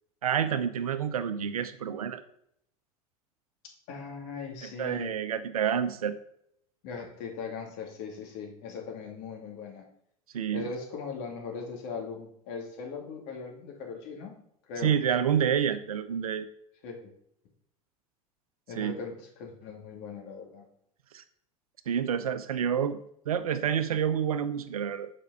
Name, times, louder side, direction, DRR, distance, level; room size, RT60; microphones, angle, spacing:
voice 1, 0.2-2.2 4.6-6.2 10.3-10.7 14.8-16.5 18.8-18.9 21.1-21.2 21.9-23.0 23.3-25.1, right 8 dB, 80° right, 11 dB, 0.7 m, -28 dB
voice 2, 3.9-5.1 6.8-9.8 10.5-14.4 14.7-14.9 16.8-17.1 18.7-20.6, left 5 dB, 60° left, 1 dB, 2.5 m, -39 dB
7.1 x 5.3 x 5.5 m, 0.70 s
hypercardioid pair, 75°, 18 cm